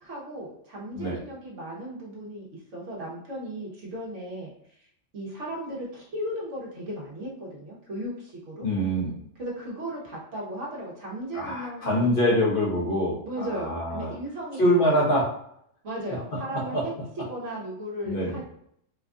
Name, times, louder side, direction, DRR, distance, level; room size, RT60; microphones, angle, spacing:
voice 1, 0.0-2.5 2.7-4.5 5.1-8.6 9.4-12.4 13.2-14.6 15.8-16.9 17.2-18.4, right 1 dB, 75° right, -4 dB, 1.4 m, -36 dB
voice 2, 8.6-9.2 11.3-14.1 14.6-15.3 16.3-16.8 18.0-18.4, equal, 50° left, -3 dB, 1.0 m, -25 dB
4.4 x 2.3 x 2.5 m, 0.70 s
omnidirectional pair, 1.3 m